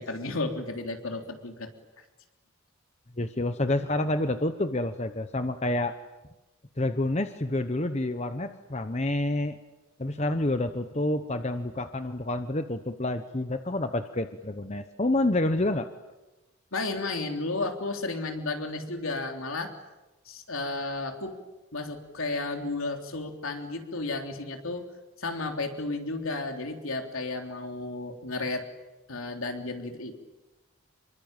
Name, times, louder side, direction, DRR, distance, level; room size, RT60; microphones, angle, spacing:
voice 1, 0.0-1.7 16.7-19.8 20.2-21.4 21.7-24.9 25.2-28.7 29.1-30.2, left 2 dB, 75° left, 4 dB, 3.5 m, -33 dB
voice 2, 3.2-5.9 6.8-9.6 10.0-15.9, left 1 dB, 30° left, 9 dB, 1.0 m, -28 dB
27.5 x 23.0 x 9.1 m, 1.1 s
head